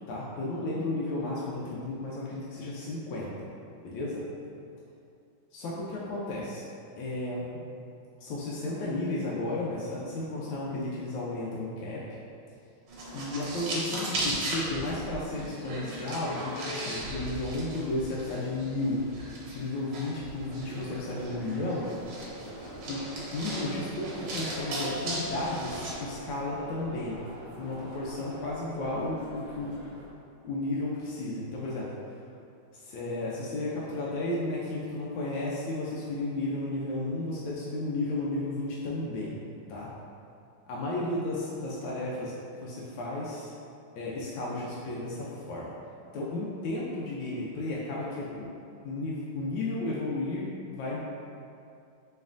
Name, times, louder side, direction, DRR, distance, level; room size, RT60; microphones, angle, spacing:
voice 1, 0.1-3.5 3.8-4.2 5.5-6.6 7.0-7.4 8.2-12.0 13.1-19.0 19.5-21.9 22.9-23.0 23.3-27.2 27.6-29.7 30.4-31.9 32.7-39.4 39.7-39.9 40.7-42.3 42.6-43.5 44.0-45.7 46.1-48.5 48.8-51.0, left 2 dB, 75° left, -6 dB, 1.3 m, -33 dB
sound 1, 12.9-25.9, right 1 dB, 85° right, 1.6 m, -37 dB
sound 2, 20.4-30.1, right 1 dB, 60° right, 1.2 m, -45 dB
4.2 x 3.2 x 2.4 m, 2.6 s
omnidirectional pair, 2.2 m